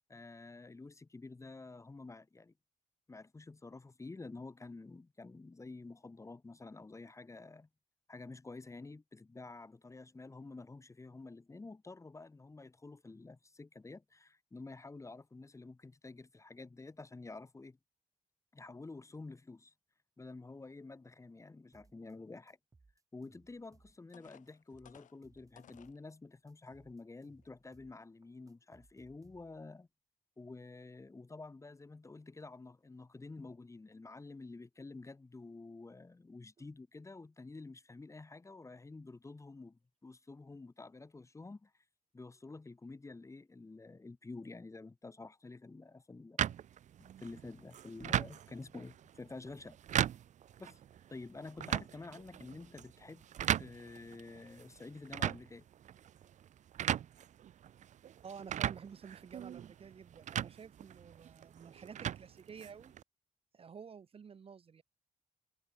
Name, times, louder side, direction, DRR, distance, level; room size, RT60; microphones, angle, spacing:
voice 1, 0.0-2.5 3.1-7.7 8.1-17.8 18.5-19.7 20.2-22.6 23.1-29.9 30.4-41.7 42.1-46.5 47.0-49.8 50.6-50.8 51.1-53.3 53.6-55.7, left 3 dB, 20° left, 1.5 m, -50 dB
sound 1, 21.7-22.1 22.5-24.1 24.5-26.1 26.5-28.0 28.2-29.7, right 3 dB, 25° right, 2.4 m, -67 dB
sound 2, 23.6-23.7 24.1-26.0 26.7-26.8 27.3-27.5, left 9 dB, 70° left, 5.9 m, -60 dB
sound 3, 46.4-63.0, right 10 dB, 65° right, 0.6 m, -39 dB
voice 2, 58.2-62.9 63.5-64.8, right 6 dB, 45° right, 1.2 m, -51 dB
cardioid pair, 90°, 13 cm